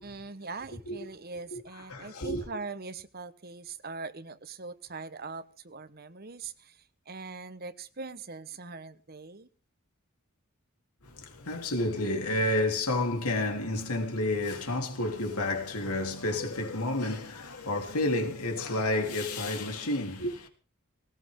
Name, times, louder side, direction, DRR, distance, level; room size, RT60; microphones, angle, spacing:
voice 1, 0.0-6.8 7.1-9.5, right 4 dB, 45° right, 1.2 m, -41 dB
voice 2, 1.5-2.4 11.0-20.5, left 2 dB, 85° left, 3.5 m, -30 dB
19.0 x 19.0 x 3.8 m
head